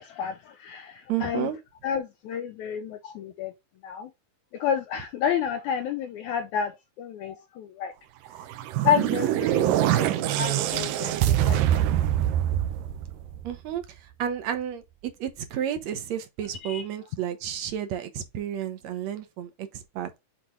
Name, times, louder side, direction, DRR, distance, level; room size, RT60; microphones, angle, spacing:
voice 1, 0.0-1.5 1.8-3.5 3.8-4.1 4.6-7.9 8.8-11.9 16.6-16.9, left 8 dB, 80° left, 1.8 m, -30 dB
voice 2, 1.1-1.6 13.4-20.2, right 10 dB, 70° right, 1.8 m, -32 dB
sound 1, 8.4-13.7, right 12 dB, 85° right, 2.4 m, -24 dB
8.0 x 4.1 x 3.1 m
omnidirectional pair, 3.9 m